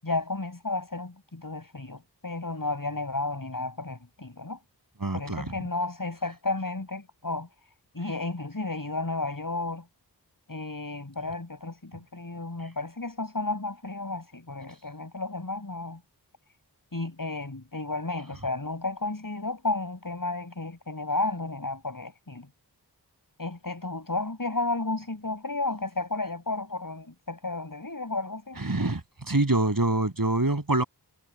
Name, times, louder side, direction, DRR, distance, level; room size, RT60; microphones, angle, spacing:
voice 1, 0.0-4.6 5.1-7.5 7.9-9.9 10.5-16.0 16.9-22.5 23.4-28.6, left 2 dB, 55° left, 7.2 m, -32 dB
voice 2, 5.0-5.4 28.6-30.8, right 2 dB, 55° right, 7.9 m, -25 dB
wide cardioid pair, 55°, 41 cm